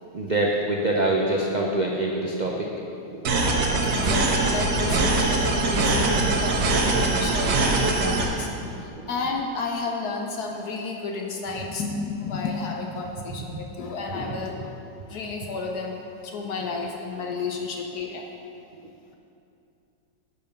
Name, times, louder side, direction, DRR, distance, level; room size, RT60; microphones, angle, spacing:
voice 1, 0.1-2.7 3.1-3.2 7.3-7.4 9.0-9.1, right 1 dB, 55° right, -1 dB, 0.5 m, -25 dB
sound 1, 3.2-8.2, right 2 dB, 75° right, 1.7 m, -22 dB
voice 2, 3.9-14.8 15.1-18.2, left 4 dB, 65° left, 2 dB, 1.2 m, -32 dB
10.5 x 5.5 x 6.8 m, 2.7 s
omnidirectional pair, 1.9 m